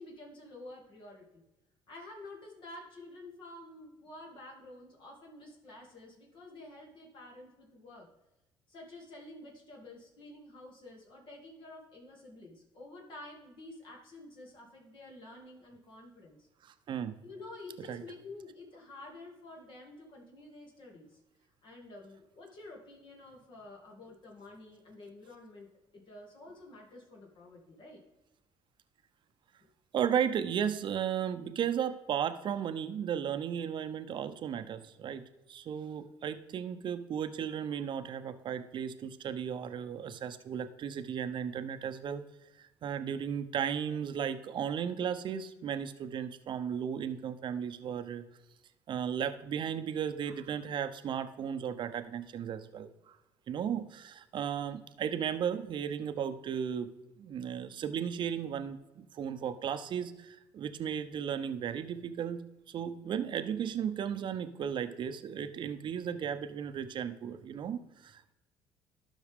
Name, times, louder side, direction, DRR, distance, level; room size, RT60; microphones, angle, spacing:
voice 1, 0.0-1.4 1.9-8.1 8.7-16.5 17.2-21.2 21.6-25.7 25.9-28.0, left 2 dB, 55° left, -1 dB, 2.4 m, -50 dB
voice 2, 16.6-17.1 17.9-18.0 29.9-35.2 35.5-42.2 42.6-48.3 48.9-53.2 53.5-56.9 57.2-62.4 62.7-68.3, right 8 dB, 55° right, 10 dB, 0.7 m, -35 dB
12.5 x 5.5 x 3.6 m, 0.98 s
supercardioid pair, 75°, 10 cm